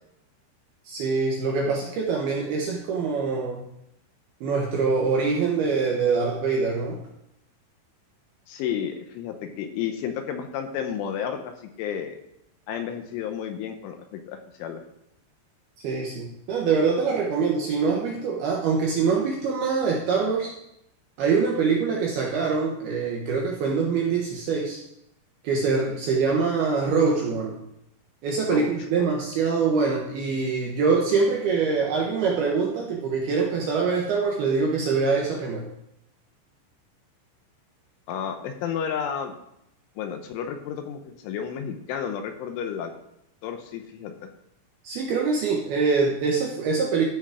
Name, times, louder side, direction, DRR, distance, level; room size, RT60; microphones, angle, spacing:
voice 1, 0.9-3.7 4.4-7.0 15.8-20.5 21.2-24.8 25.4-27.6 28.2-35.7 44.8-47.1, right 5 dB, 70° right, -2 dB, 2.5 m, -24 dB
voice 2, 8.5-12.2 12.7-14.8 28.5-29.0 38.1-39.4 40.0-42.9 43.4-44.3, left 8 dB, 75° left, 6 dB, 3.2 m, -32 dB
14.0 x 6.3 x 4.9 m, 0.79 s
omnidirectional pair, 6.0 m